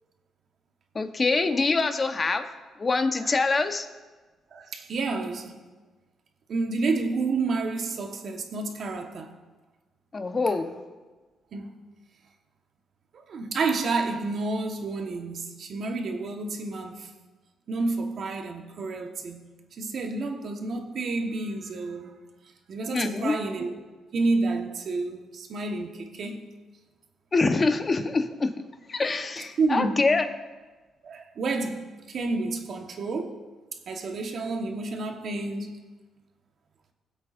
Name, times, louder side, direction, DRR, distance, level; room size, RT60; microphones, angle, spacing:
voice 1, 0.9-2.5 2.8-3.9 10.1-10.7 22.9-23.3 27.3-28.5 28.9-30.2, left 3 dB, 30° left, 1.0 m, -25 dB
voice 2, 4.5-5.6 6.5-9.3 11.5-11.7 13.3-17.1 17.7-19.5 19.8-22.1 22.7-23.7 24.1-26.4 29.6-30.0 31.0-33.4 33.9-35.8, right 3 dB, 60° right, 1.3 m, -30 dB
22.5 x 8.0 x 2.6 m
cardioid pair, 90°, 0 cm